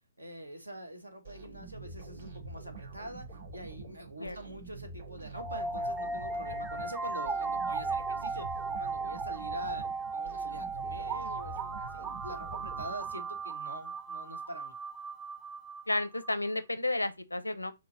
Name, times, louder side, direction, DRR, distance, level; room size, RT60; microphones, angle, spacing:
voice 1, 0.2-14.8, right 1 dB, 85° right, 1.3 m, -45 dB
sound 1, 1.2-13.5, right 3 dB, 70° right, 2.4 m, -46 dB
sound 2, 5.3-16.3, right 4 dB, 15° right, 0.4 m, -36 dB
voice 2, 15.9-17.7, left 2 dB, 90° left, 0.5 m, -32 dB
5.1 x 2.2 x 4.1 m
figure-of-eight pair, 130°, 0 cm